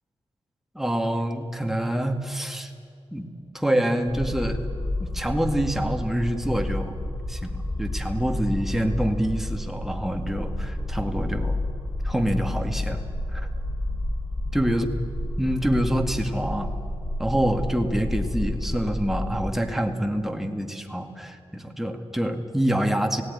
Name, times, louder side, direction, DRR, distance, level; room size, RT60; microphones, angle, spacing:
voice 1, 0.7-2.7 3.1-3.3 3.5-4.6 5.0-7.0 7.3-11.6 12.0-13.0 13.3-13.5 14.5-14.9 15.4-16.7 17.2-23.2, right 1 dB, 5° right, 4 dB, 2.1 m, -26 dB
sound 1, 4.1-19.6, left 1 dB, 20° left, 3.9 m, -30 dB
18.0 x 17.5 x 9.8 m, 2.5 s
wide cardioid pair, 80°, 11 cm